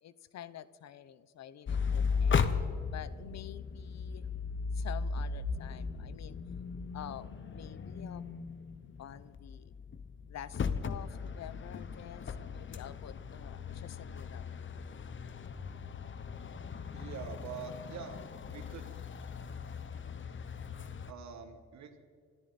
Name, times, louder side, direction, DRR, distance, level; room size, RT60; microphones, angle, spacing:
voice 1, 0.0-4.3 4.7-6.4 6.9-8.3 9.0-9.7 10.3-14.5, left 10 dB, 60° left, 17 dB, 0.8 m, -48 dB
sound 1, 1.7-21.1, left 5 dB, 40° left, 1.0 m, -37 dB
voice 2, 16.9-18.2 18.5-18.9 21.1-22.0, right 7 dB, 65° right, 8 dB, 1.8 m, -45 dB
25.0 x 13.5 x 4.2 m, 2.2 s
cardioid pair, 90°, 30 cm